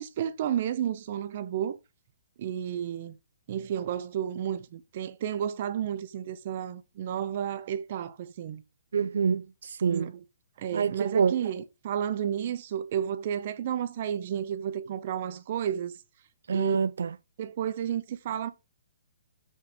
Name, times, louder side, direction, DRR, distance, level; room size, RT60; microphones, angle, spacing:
voice 1, 0.0-1.8 2.4-3.1 3.5-8.6 9.9-10.2 10.6-15.9 16.5-16.8 17.4-18.5, right 9 dB, 45° right, 1.1 m, -31 dB
voice 2, 8.9-10.1 10.7-11.4 16.5-17.1, right 6 dB, 75° right, 0.4 m, -26 dB
6.4 x 5.9 x 6.5 m
hypercardioid pair, 160°, 0 cm